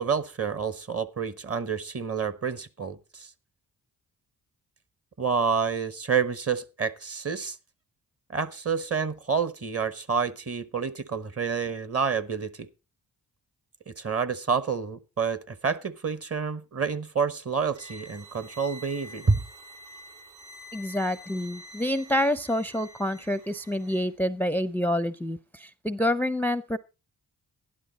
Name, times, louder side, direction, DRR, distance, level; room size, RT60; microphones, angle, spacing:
voice 1, 0.0-3.3 5.2-7.6 8.3-12.7 13.9-19.4, right 5 dB, 40° right, 1.1 m, -28 dB
sound 1, 17.7-24.1, equal, 70° right, 2.6 m, -47 dB
voice 2, 20.7-26.8, left 1 dB, 5° left, 0.5 m, -27 dB
12.0 x 11.0 x 3.9 m
cardioid pair, 50°, 38 cm